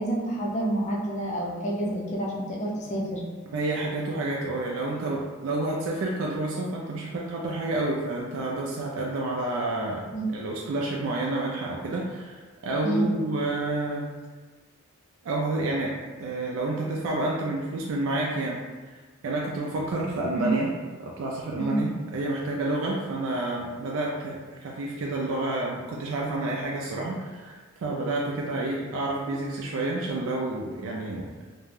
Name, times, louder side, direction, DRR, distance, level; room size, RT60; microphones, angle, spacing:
voice 1, 0.0-3.2 10.1-10.3 12.8-13.1 20.4-20.5 21.6-21.8, right 1 dB, 35° left, -3 dB, 0.4 m, -28 dB
voice 2, 3.5-14.0 15.2-15.9 16.2-18.6 18.9-20.7 21.0-31.3, right 2 dB, 65° right, -2 dB, 0.3 m, -29 dB
2.4 x 2.1 x 3.2 m, 1.3 s
head